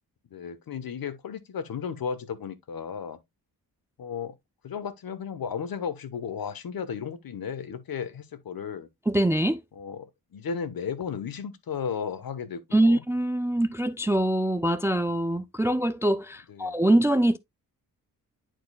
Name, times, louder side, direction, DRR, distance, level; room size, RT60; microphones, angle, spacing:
voice 1, 0.3-3.2 4.0-4.3 4.6-8.9 9.7-13.0 16.5-16.8, left 6 dB, 65° left, 1.2 m, -34 dB
voice 2, 9.1-9.6 12.7-17.4, right 1 dB, 5° right, 0.3 m, -23 dB
10.5 x 4.6 x 2.3 m
cardioid pair, 95°, 38 cm